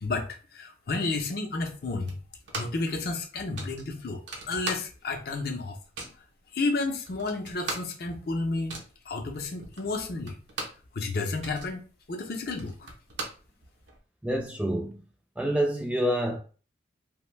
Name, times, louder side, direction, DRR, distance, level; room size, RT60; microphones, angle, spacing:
voice 1, 0.0-2.2 2.5-5.8 6.5-8.7 9.1-10.4 10.9-11.8 12.1-12.9, left 3 dB, 55° left, 0.5 m, -31 dB
sound 1, 2.1-2.9 3.2-3.3 3.6-5.2 5.5-6.3 6.8-6.9 7.1-10.9 11.2-14.0, right 3 dB, 75° right, 0.7 m, -39 dB
voice 2, 14.2-15.0 15.4-16.4, equal, 5° right, 0.3 m, -27 dB
2.5 x 2.1 x 3.1 m
head